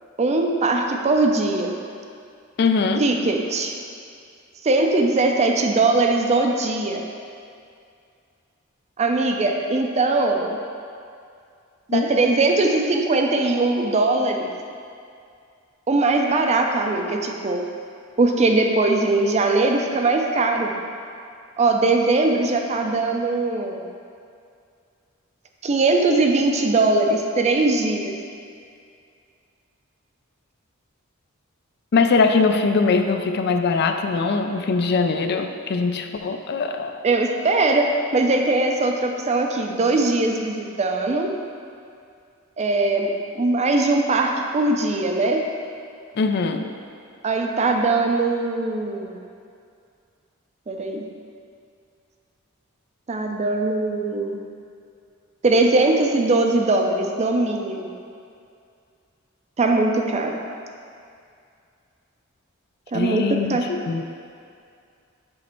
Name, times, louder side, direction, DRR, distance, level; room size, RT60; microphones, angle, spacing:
voice 1, 0.2-1.7 3.0-3.7 4.6-7.1 9.0-10.6 11.9-14.5 15.9-17.7 18.2-20.7 21.6-23.8 25.6-28.1 37.0-41.3 42.6-45.5 47.2-49.2 50.7-51.0 53.1-54.4 55.4-57.9 59.6-60.4 62.9-63.2 63.5-63.6, right 2 dB, 30° right, 2 dB, 0.5 m, -20 dB
voice 2, 2.6-3.0 11.9-12.1 31.9-36.9 46.2-46.7 62.9-63.6 63.9-64.0, left 4 dB, 55° left, 6 dB, 0.4 m, -21 dB
7.5 x 3.2 x 4.4 m, 2.4 s
head